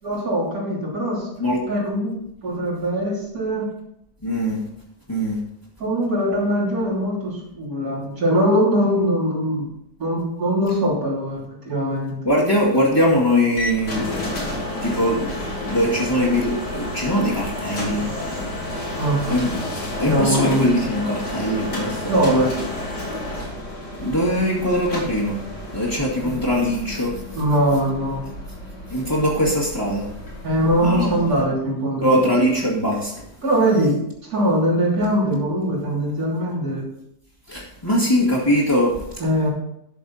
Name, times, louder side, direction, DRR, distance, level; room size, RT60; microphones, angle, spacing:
voice 1, 0.0-1.3 1.7-2.1 2.4-3.7 5.8-9.7 10.0-12.2 19.0-19.2 20.1-20.7 22.0-22.5 26.2-26.3 27.3-28.2 30.4-32.5 33.4-34.0 34.2-36.9 39.2-39.5, equal, 60° right, -5 dB, 3.7 m, -21 dB
voice 2, 4.2-4.6 5.1-5.4 12.2-14.0 14.8-15.3 15.7-18.0 19.3-19.5 20.0-22.1 24.0-25.4 25.7-27.1 28.9-30.0 30.8-31.1 32.0-33.1 37.5-38.9, equal, 15° left, -7 dB, 2.0 m, -21 dB
sound 1, 13.6-31.4, left 1 dB, 80° left, 3.5 m, -31 dB
12.0 x 6.8 x 4.1 m, 0.81 s
omnidirectional pair, 1.8 m